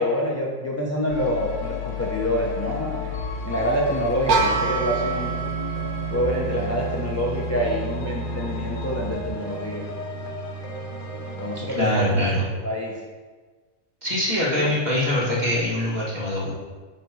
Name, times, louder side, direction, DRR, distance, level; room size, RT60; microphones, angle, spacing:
voice 1, 0.0-3.2 3.4-5.3 6.1-9.8 11.4-13.0 14.5-14.7, equal, 20° left, -3 dB, 0.4 m, -26 dB
sound 1, 1.1-11.6, left 2 dB, 40° left, 0.9 m, -32 dB
sound 2, 4.3-10.1, right 6 dB, 75° right, 1.3 m, -29 dB
voice 2, 11.7-12.5 14.0-16.5, left 1 dB, 30° right, -6 dB, 2.0 m, -23 dB
9.4 x 3.7 x 4.7 m, 1.4 s
omnidirectional pair, 1.6 m